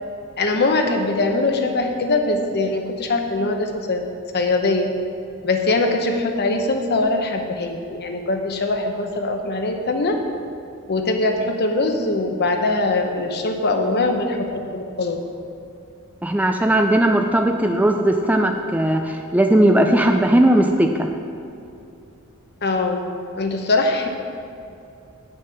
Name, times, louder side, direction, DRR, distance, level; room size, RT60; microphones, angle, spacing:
voice 1, 0.4-4.1 4.3-4.9 5.4-10.2 10.9-14.4 14.7-15.2 22.6-23.1 23.4-24.1, left 2 dB, 50° left, 4 dB, 0.9 m, -22 dB
voice 2, 16.2-21.1, right 1 dB, 5° right, 4 dB, 0.4 m, -17 dB
9.5 x 6.4 x 5.7 m, 2.6 s
head